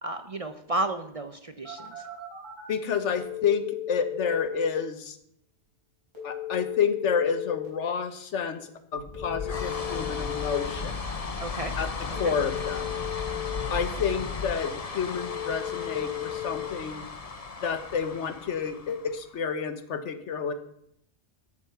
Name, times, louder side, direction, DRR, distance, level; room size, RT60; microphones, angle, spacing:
voice 1, 0.0-2.1 11.4-11.7 12.2-12.3, right 2 dB, 40° right, 9 dB, 0.6 m, -32 dB
Telephone, 1.6-2.6 3.1-4.7 6.1-7.7 9.1-10.7 12.1-13.7 15.1-16.7, left 12 dB, 20° right, 5.5 m, -35 dB
voice 2, 2.7-5.2 6.2-11.0 11.8-11.9 12.2-12.9 13.7-17.0 17.6-20.5, left 6 dB, 80° left, 10 dB, 1.3 m, -29 dB
sound 1, 9.0-19.5, left 4 dB, 35° left, 0.9 m, -35 dB
13.0 x 7.0 x 5.9 m, 0.73 s
omnidirectional pair, 1.2 m